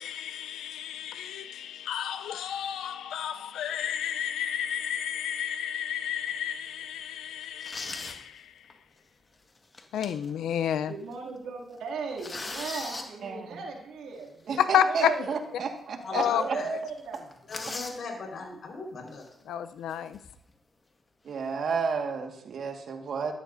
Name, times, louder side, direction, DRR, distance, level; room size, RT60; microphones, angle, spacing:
voice 1, 0.0-8.7 9.9-10.9 14.6-15.1 16.1-16.4 19.5-20.2, left 9 dB, 85° left, 11 dB, 0.6 m, -30 dB
sound 1, 6.0-6.3 6.8-6.9 7.4-8.2 8.6-8.7 9.6-10.3 10.7-10.8 11.1-11.4 11.7-13.1 15.0-15.1 15.6-15.7 16.0-16.1 16.4-16.6 16.9-18.0 19.1-19.3 19.9-20.5, left 3 dB, 35° left, 1.8 m, -39 dB
voice 2, 10.9-14.6 14.9-15.3 16.3-17.3, right 4 dB, 85° right, -1 dB, 2.7 m, -37 dB
voice 3, 13.2-13.7 14.5-16.6 21.2-23.3, right 5 dB, 70° right, 3 dB, 1.9 m, -32 dB
voice 4, 16.0-16.7 17.5-19.2, left 3 dB, 65° left, -1 dB, 4.8 m, -38 dB
13.0 x 12.5 x 2.7 m, 0.73 s
cardioid pair, 65°, 0 cm